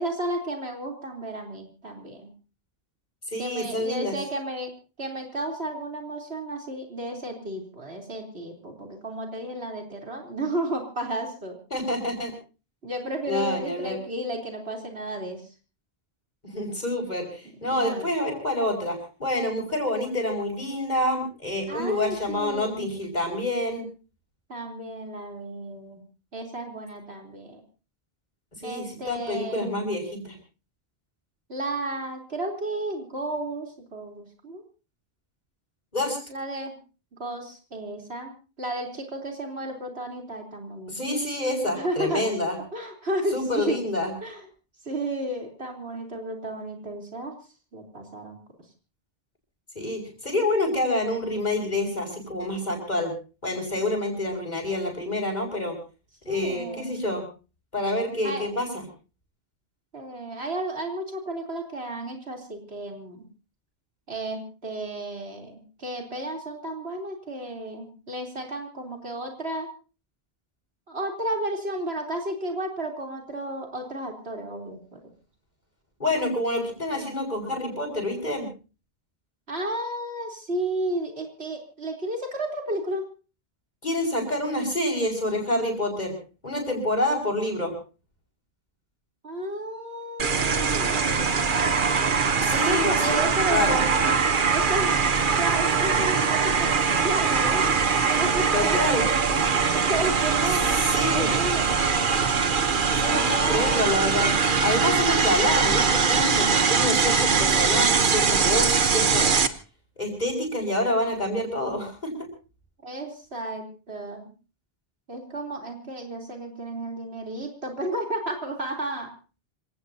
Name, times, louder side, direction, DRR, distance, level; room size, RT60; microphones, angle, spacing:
voice 1, 0.0-2.3 3.4-4.7 5.0-11.6 12.8-15.4 17.7-18.1 21.7-22.9 24.5-26.0 26.3-27.6 28.6-29.8 31.5-34.6 36.3-36.8 37.2-40.9 41.7-42.2 42.7-43.8 44.2-44.4 44.9-47.4 47.7-48.4 56.3-57.0 58.2-58.4 59.9-63.2 64.1-69.7 70.9-75.0 76.9-77.1 79.5-83.1 89.2-91.7 92.5-94.1 94.5-95.0 95.3-97.7 98.1-100.6 101.1-102.1 103.0-103.9 104.2-104.3 112.8-114.3 115.1-119.1, right 1 dB, 80° right, 2 dB, 4.0 m, -32 dB
voice 2, 3.3-4.2 11.7-12.3 13.3-14.0 16.4-23.9 28.6-30.4 35.9-36.2 40.9-42.6 43.3-44.1 49.7-53.1 53.4-55.8 56.3-57.3 57.7-58.8 76.0-78.5 83.8-86.1 86.4-87.7 92.4-93.8 98.5-99.0 100.9-101.3 102.9-104.3 104.6-109.4 110.0-112.1, left 1 dB, 45° left, 2 dB, 6.2 m, -27 dB
sound 1, 90.2-109.5, right 5 dB, 55° right, 1.2 m, -22 dB
27.0 x 17.0 x 2.8 m, 0.34 s
omnidirectional pair, 1.0 m